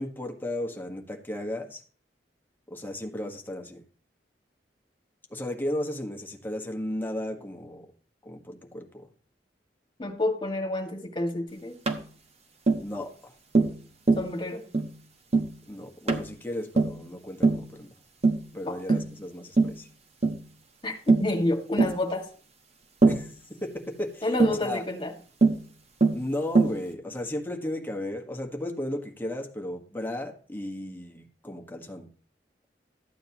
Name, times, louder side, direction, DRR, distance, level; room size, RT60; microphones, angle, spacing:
voice 1, 0.0-1.8 2.7-3.8 5.3-7.9 8.2-9.1 12.8-13.3 15.7-17.9 18.5-19.9 23.0-23.3 23.6-24.9 26.1-32.1, left 1 dB, 10° left, 1.4 m, -35 dB
voice 2, 10.0-11.8 14.2-14.7 18.7-18.8 20.8-22.3 24.2-25.1, left 2 dB, 30° left, 2.0 m, -29 dB
Tap, 11.9-12.0 12.7-12.9 13.5-13.8 14.1-14.3 14.7-14.9 15.3-15.5 16.1-16.3 16.8-17.0 17.4-17.7 18.2-18.5 18.9-19.1 19.6-19.8 20.2-20.4 21.1-21.3 21.8-22.0 23.0-23.3 24.4-24.6 25.4-25.6 26.0-26.2 26.6-26.8, right 3 dB, 40° right, 1.1 m, -22 dB
13.5 x 9.0 x 3.0 m
head